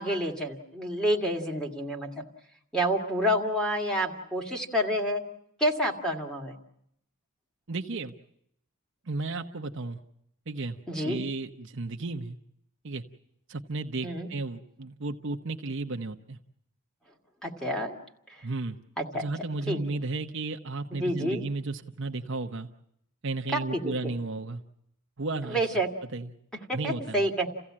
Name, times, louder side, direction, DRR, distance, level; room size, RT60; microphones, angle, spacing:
voice 1, 0.0-2.2 2.7-5.2 5.6-6.6 10.9-11.2 14.0-14.3 17.4-17.9 19.0-19.3 19.7-19.8 20.9-21.4 23.5-24.1 25.5-25.9 26.7-27.5, equal, 5° left, -2 dB, 2.1 m, -28 dB
voice 2, 7.7-8.1 9.1-10.0 10.5-12.4 12.8-13.0 13.5-16.4 18.4-18.8 19.1-22.7 23.2-24.6 25.2-25.6 26.1-26.3 26.7-27.3, right 3 dB, 55° right, 5 dB, 0.9 m, -34 dB
29.0 x 15.5 x 8.7 m, 0.78 s
head